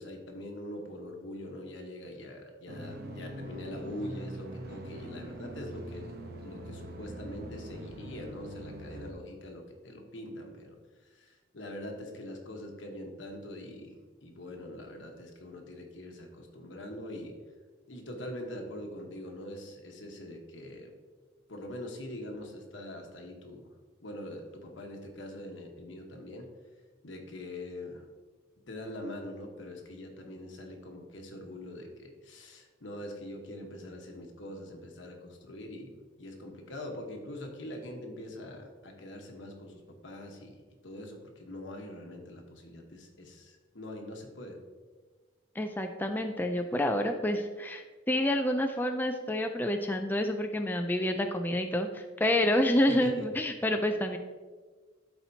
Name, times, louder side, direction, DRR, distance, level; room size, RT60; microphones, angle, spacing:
voice 1, 0.0-6.1 6.4-10.8 11.1-17.3 17.9-20.9 21.5-23.7 24.0-26.5 27.0-28.0 28.7-44.6 52.9-53.3, left 1 dB, 75° left, 2 dB, 1.2 m, -43 dB
sound 1, 2.7-9.1, right 1 dB, 55° right, 0.9 m, -42 dB
voice 2, 45.6-54.2, left 1 dB, 10° left, 5 dB, 0.3 m, -28 dB
12.0 x 4.4 x 2.8 m, 1.4 s
head